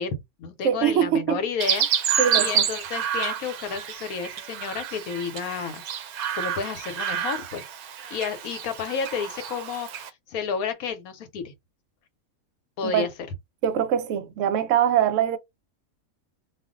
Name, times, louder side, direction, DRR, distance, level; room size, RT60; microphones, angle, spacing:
voice 1, 0.0-5.8 6.3-7.6 8.1-11.5 12.8-13.1, left 6 dB, 80° left, 1.2 m, -31 dB
voice 2, 0.6-1.4 2.2-2.7 12.8-13.1 13.6-15.4, right 9 dB, 70° right, 0.9 m, -23 dB
Chirp tweet, 1.6-10.1, right 9 dB, 85° right, 1.1 m, -29 dB
2.5 x 2.4 x 3.7 m
omnidirectional pair, 1.5 m